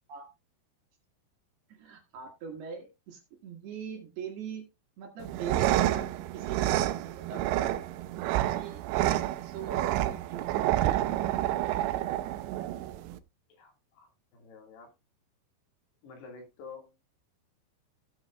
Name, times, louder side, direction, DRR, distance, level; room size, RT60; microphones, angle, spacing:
voice 1, 1.7-4.6 5.0-6.1 6.3-7.8 8.5-8.8 9.4-11.2, right 6 dB, 70° right, 1 dB, 3.8 m, -42 dB
sound 1, 5.2-13.2, right 14 dB, 90° right, 3.0 m, -29 dB
voice 2, 13.5-14.9 16.0-16.9, left 5 dB, 70° left, 2 dB, 4.1 m, -49 dB
16.0 x 8.1 x 2.4 m, 0.24 s
omnidirectional pair, 5.0 m